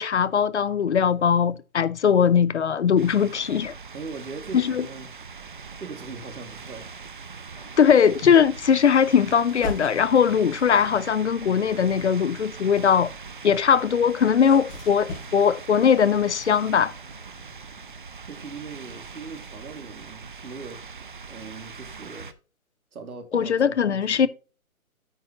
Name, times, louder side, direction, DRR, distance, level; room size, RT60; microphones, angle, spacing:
voice 1, 0.0-3.7 4.5-4.9 7.8-13.1 13.4-16.9 23.3-24.3, left 7 dB, 55° left, 0.6 m, -20 dB
sound 1, 3.0-22.3, right 5 dB, 35° right, 0.6 m, -42 dB
voice 2, 3.9-5.1 5.8-6.9 18.2-22.3 22.9-24.3, right 4 dB, 80° right, 2.6 m, -40 dB
sound 2, 9.5-11.1 11.7-17.9, left 2 dB, 30° left, 4.5 m, -42 dB
9.1 x 8.4 x 3.0 m
hypercardioid pair, 165°, 43 cm